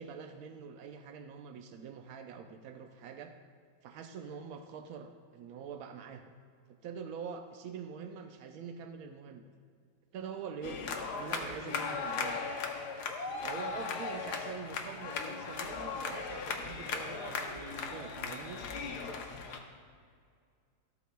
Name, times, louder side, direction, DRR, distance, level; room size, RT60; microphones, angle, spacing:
voice 1, 0.0-3.3 3.8-6.2 6.8-9.5 10.1-12.4 13.4-17.4 17.9-18.6, right 6 dB, 90° right, 5 dB, 0.8 m, -45 dB
sound 1, 10.6-19.6, left 5 dB, 65° left, 1.2 m, -38 dB
voice 2, 17.1-19.2, right 2 dB, 25° right, -3 dB, 1.9 m, -50 dB
13.0 x 8.3 x 2.2 m, 2.1 s
omnidirectional pair, 2.1 m